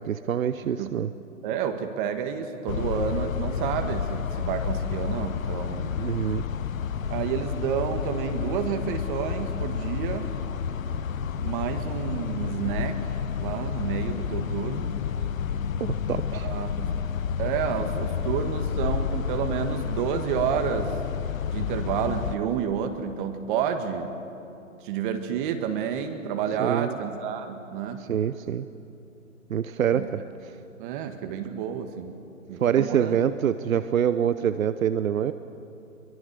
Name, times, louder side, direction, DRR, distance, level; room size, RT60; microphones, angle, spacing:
voice 1, 0.0-1.1 6.0-6.4 15.8-16.5 26.6-26.9 28.1-28.7 29.5-30.5 32.6-35.3, right 9 dB, 80° right, 12 dB, 0.9 m, -25 dB
voice 2, 1.4-5.9 7.1-10.3 11.4-13.1 13.4-15.0 16.3-16.9 17.4-21.0 21.5-24.1 24.8-28.1 29.9-30.1 30.8-32.2 32.5-33.2, right 8 dB, 40° right, 6 dB, 1.7 m, -30 dB
sound 1, 2.7-22.4, left 7 dB, 75° left, 1.0 m, -30 dB
23.5 x 22.5 x 6.8 m, 2.7 s
hypercardioid pair, 130°, 41 cm